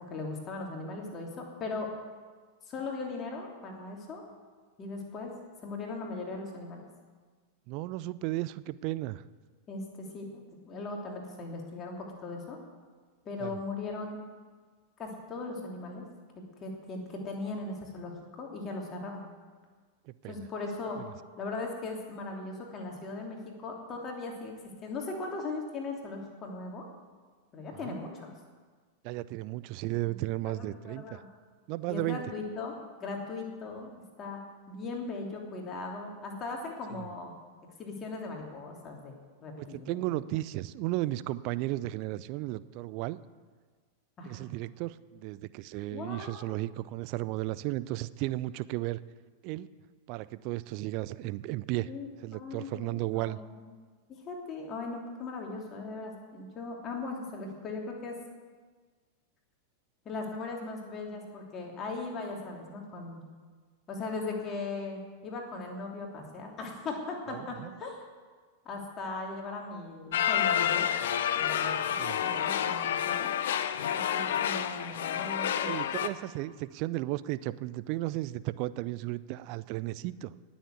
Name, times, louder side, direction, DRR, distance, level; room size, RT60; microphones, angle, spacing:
voice 1, 0.0-1.9 2.7-4.2 4.8-5.3 5.6-6.8 9.7-12.6 13.2-14.2 15.0-16.0 16.3-18.1 18.4-19.2 20.3-21.0 21.4-24.5 24.8-26.9 27.5-28.3 29.8-31.3 31.9-32.7 33.0-33.9 34.2-34.4 34.7-37.3 37.8-40.0 44.2-44.4 45.9-46.6 51.9-53.6 54.1-58.2 60.0-63.2 63.9-68.0 68.6-70.9 71.3-71.8 72.2-73.3 73.9-75.7, left 3 dB, 30° left, 0 dB, 3.0 m, -39 dB
voice 2, 7.7-9.2 13.4-13.6 20.1-20.5 27.8-28.0 29.0-31.2 31.7-32.2 36.9-37.1 39.6-43.2 44.2-49.0 49.4-49.7 50.1-51.9 52.2-53.4 67.3-67.8 72.0-72.2 75.6-80.3, right 17 dB, 45° right, 16 dB, 0.5 m, -34 dB
sound 1, 70.1-76.1, left 9 dB, 60° left, 0.7 m, -29 dB
19.0 x 7.2 x 8.2 m, 1.5 s
figure-of-eight pair, 90°, 0 cm